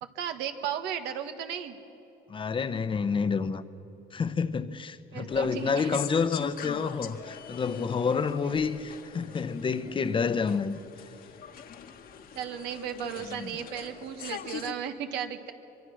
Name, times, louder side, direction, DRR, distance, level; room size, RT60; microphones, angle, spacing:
voice 1, 0.0-1.8 5.1-6.0 12.3-15.5, right 9 dB, 90° right, 1.5 m, -35 dB
voice 2, 2.3-3.6 4.1-10.7 13.3-13.5, left 5 dB, 30° left, 0.8 m, -29 dB
Supermarket - self service machine, 5.3-14.7, left 8 dB, 60° left, 1.4 m, -43 dB
24.5 x 22.5 x 6.4 m
cardioid pair, 110°, 17 cm